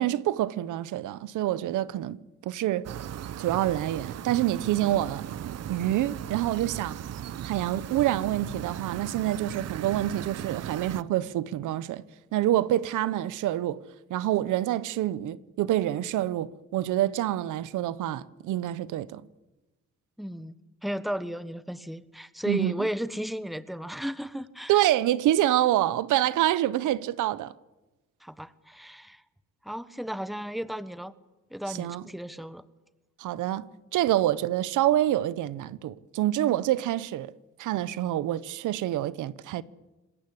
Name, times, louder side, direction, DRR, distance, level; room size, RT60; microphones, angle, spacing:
voice 1, 0.0-2.2 2.4-2.8 3.4-5.2 5.7-7.0 7.4-12.0 12.3-13.8 14.1-19.2 22.5-22.7 24.7-27.5 31.7-32.0 33.2-37.3 37.6-39.6, right 13 dB, 85° right, 0.9 m, -27 dB
sound 1, 2.8-11.0, right 10 dB, 55° right, 0.9 m, -37 dB
voice 2, 20.2-20.5 20.8-24.8 28.2-29.2 29.6-31.1 31.5-32.6, equal, ahead, 1.3 m, -34 dB
27.0 x 20.5 x 8.5 m
cardioid pair, 90°, 30 cm